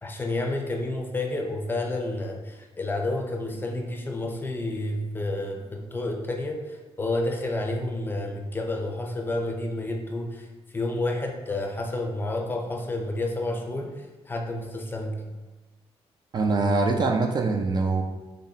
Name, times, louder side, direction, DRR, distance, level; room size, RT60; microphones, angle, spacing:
voice 1, 0.0-10.4 10.7-13.9 14.3-15.1, left 2 dB, 20° left, 2 dB, 0.5 m, -30 dB
voice 2, 16.3-18.0, right 3 dB, 40° right, 3 dB, 0.3 m, -23 dB
4.0 x 3.3 x 2.7 m, 1.2 s
cardioid pair, 120°, 11 cm